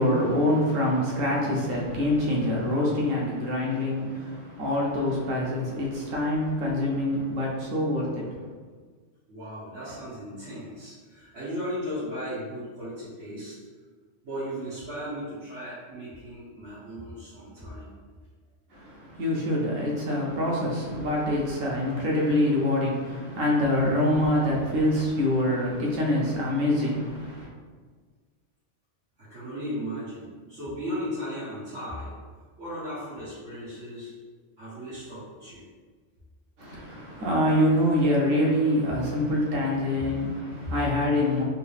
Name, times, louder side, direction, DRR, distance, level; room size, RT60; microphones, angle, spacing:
voice 1, 0.0-8.4 18.7-27.5 36.6-41.4, left 1 dB, 90° right, -3 dB, 1.3 m, -25 dB
voice 2, 9.3-13.5 14.2-17.9 29.2-32.1 32.6-34.1 34.6-35.6, equal, 65° right, -15 dB, 1.7 m, -36 dB
3.7 x 2.7 x 3.3 m, 1.5 s
omnidirectional pair, 1.3 m